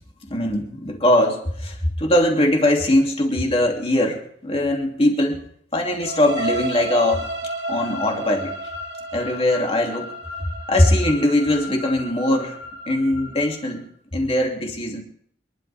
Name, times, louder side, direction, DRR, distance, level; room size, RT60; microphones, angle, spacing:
voice 1, 0.3-5.4 5.7-7.2 7.7-8.5 9.1-10.1 10.7-12.6 12.9-13.8 14.1-15.0, left 1 dB, 35° left, 1 dB, 2.8 m, -21 dB
sound 1, 6.0-13.8, right 1 dB, 75° right, 2.5 m, -32 dB
28.5 x 11.5 x 3.5 m, 0.64 s
head